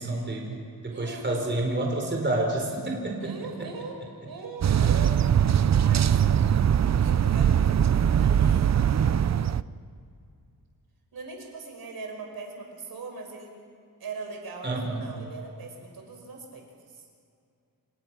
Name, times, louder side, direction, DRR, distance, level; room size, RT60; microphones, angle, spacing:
voice 1, 0.0-3.7 14.6-15.1, right 2 dB, 30° right, 1 dB, 4.3 m, -29 dB
voice 2, 0.9-1.5 3.2-5.1 5.8-6.5 7.0-9.6 11.1-13.5 14.0-17.1, right 4 dB, 75° right, 2 dB, 5.7 m, -41 dB
sound 1, 4.6-9.6, right 9 dB, 45° right, 0.6 m, -21 dB
28.5 x 28.5 x 6.1 m, 2.4 s
wide cardioid pair, 125°, 36 cm